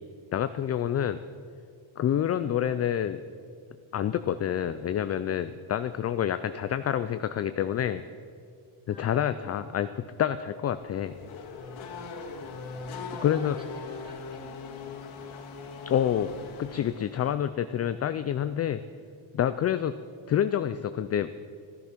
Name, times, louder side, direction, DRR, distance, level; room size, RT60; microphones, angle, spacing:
voice 1, 0.3-1.2 2.0-3.2 3.9-8.0 8.9-9.9 10.2-11.1 13.2-13.6 15.9-16.3 16.6-18.8 19.3-19.9 20.3-21.5, left 10 dB, 35° left, 11 dB, 0.4 m, -27 dB
voice 2, 8.9-9.8 13.1-14.9, right 1 dB, 10° right, 0 dB, 2.5 m, -50 dB
Race car auto racing / Accelerating revving vroom, 10.6-17.3, left 4 dB, 90° left, 2.1 m, -41 dB
14.0 x 12.0 x 5.9 m, 2.2 s
cardioid pair, 125°, 46 cm